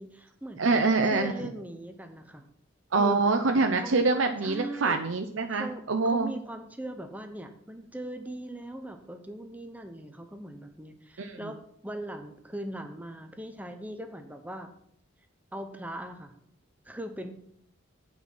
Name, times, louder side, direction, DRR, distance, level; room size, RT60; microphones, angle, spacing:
voice 1, 0.0-2.5 2.9-3.3 3.8-4.1 4.4-5.0 5.5-11.6 11.8-14.7 15.5-16.3 16.8-17.3, right 1 dB, 10° right, 7 dB, 0.8 m, -40 dB
voice 2, 0.6-1.3 2.9-6.3 11.2-11.5, right 3 dB, 75° right, 5 dB, 0.7 m, -25 dB
8.6 x 5.5 x 6.1 m, 0.68 s
head